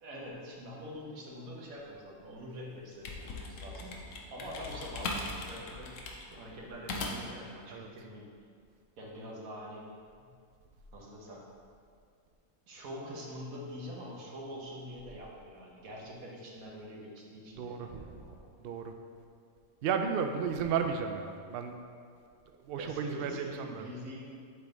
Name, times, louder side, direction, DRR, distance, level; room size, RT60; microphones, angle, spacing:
voice 1, 0.0-4.0 4.3-8.3 9.0-9.9 10.2-10.3 10.9-11.5 12.7-18.5 22.8-24.4, equal, 70° right, -3 dB, 1.4 m, -45 dB
sound 1, 2.7-7.4, left 3 dB, 65° left, 1.0 m, -39 dB
voice 2, 17.6-18.2 18.6-18.9 19.8-21.8 22.7-23.8, right 6 dB, 90° right, 5 dB, 0.5 m, -33 dB
8.0 x 3.4 x 3.9 m, 2.3 s
omnidirectional pair, 1.5 m